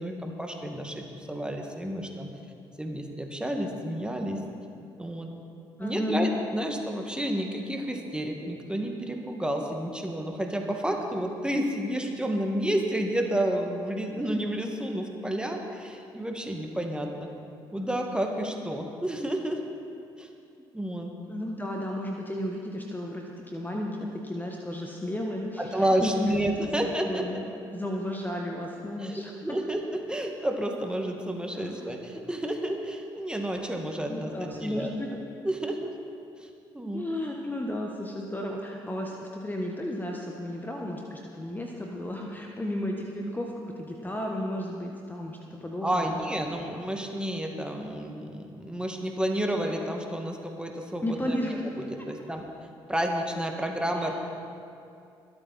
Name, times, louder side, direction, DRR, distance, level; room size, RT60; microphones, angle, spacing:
voice 1, 0.0-2.3 2.8-4.4 5.0-5.3 5.8-17.3 17.7-19.6 20.2-20.3 20.7-21.1 25.6-27.2 29.0-34.9 35.4-35.9 36.4-36.5 36.7-37.1 45.8-51.4 51.8-52.4 52.9-54.1, right 1 dB, 10° right, 2 dB, 2.1 m, -30 dB
voice 2, 5.8-6.2 21.3-26.3 27.0-29.6 31.5-31.9 34.1-35.1 36.9-46.2 51.0-51.9 53.9-54.1, left 1 dB, 15° left, 0 dB, 1.4 m, -33 dB
22.5 x 8.8 x 4.3 m, 2.5 s
hypercardioid pair, 50°, 12 cm